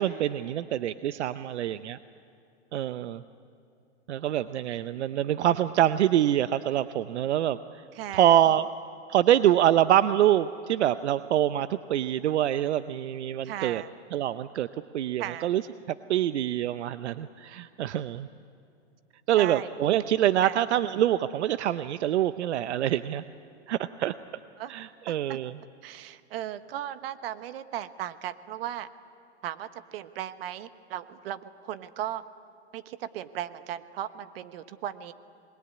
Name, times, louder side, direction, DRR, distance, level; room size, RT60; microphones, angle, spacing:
voice 1, 0.0-2.0 2.7-3.2 4.1-7.6 8.1-8.7 9.1-13.8 14.1-14.7 14.9-15.6 15.9-18.3 19.3-23.2 23.7-24.1 24.7-25.6, right 11 dB, 80° right, 13 dB, 0.8 m, -25 dB
voice 2, 7.9-8.4 13.4-13.9 15.2-15.5 17.9-18.0 19.3-19.7 20.4-20.5 24.6-24.7 25.1-25.4 25.8-28.9 29.4-32.2 32.7-35.1, right 12 dB, 60° right, 12 dB, 1.3 m, -36 dB
26.5 x 21.0 x 9.8 m, 2.6 s
hypercardioid pair, 135°, 33 cm